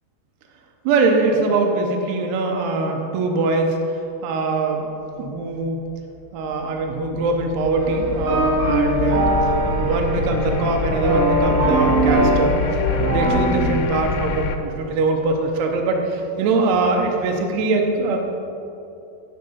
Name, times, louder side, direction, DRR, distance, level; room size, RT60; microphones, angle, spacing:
voice 1, 0.8-3.8 4.2-4.9 5.2-5.8 6.3-9.4 9.8-12.6 13.1-18.2, right 3 dB, 80° right, 2 dB, 2.9 m, -22 dB
sound 1, 6.2-14.6, left 5 dB, 85° left, 2.8 m, -26 dB
sound 2, 7.8-13.8, right 2 dB, 60° right, 1.2 m, -21 dB
10.0 x 6.6 x 5.5 m, 2.7 s
omnidirectional pair, 4.9 m